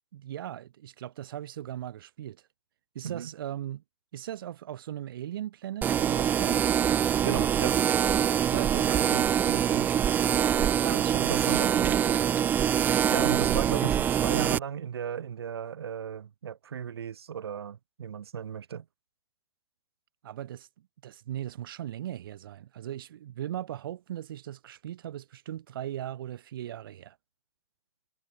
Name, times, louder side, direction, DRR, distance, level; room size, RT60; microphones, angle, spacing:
voice 1, 0.1-2.5 3.0-3.8 4.1-6.7 8.5-10.1 10.6-12.2 13.1-13.6 20.2-20.7 21.0-27.2, right 12 dB, 60° right, 3.6 m, -38 dB
sound 1, 5.8-14.6, right 9 dB, 15° right, 0.6 m, -24 dB
voice 2, 7.2-7.8 11.3-11.6 13.1-18.8, right 8 dB, 85° right, 4.6 m, -35 dB
hypercardioid pair, 155°, 13 cm